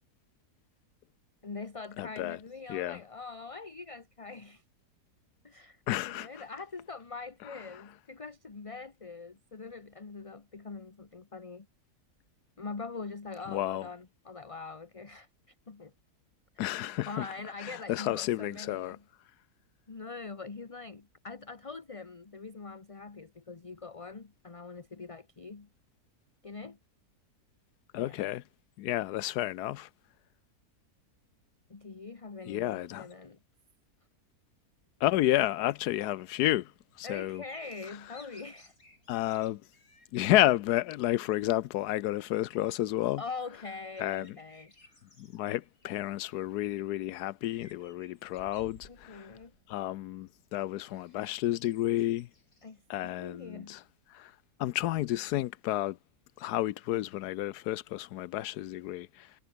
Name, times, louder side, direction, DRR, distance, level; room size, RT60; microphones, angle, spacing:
voice 1, 1.4-4.6 5.4-11.7 12.6-15.9 17.1-19.0 19.9-25.7 26.4-26.8 28.0-28.2 31.7-33.4 37.0-38.8 43.2-45.0 48.9-49.5 52.6-53.8, left 4 dB, 25° left, 1.1 m, -43 dB
voice 2, 2.0-2.4 2.7-3.0 5.9-6.4 13.5-13.9 16.6-17.3 17.6-19.0 27.9-28.4 28.8-29.9 32.5-33.1 35.0-36.7 37.0-37.4 39.1-39.6 40.1-43.2 44.0-44.3 45.2-49.3 49.7-52.3 52.9-53.8 54.1-54.3 54.6-56.0 56.4-59.3, left 15 dB, 90° left, 1.2 m, -31 dB
sound 1, 36.0-53.6, left 2 dB, 60° left, 7.9 m, -62 dB
omnidirectional pair, 1.6 m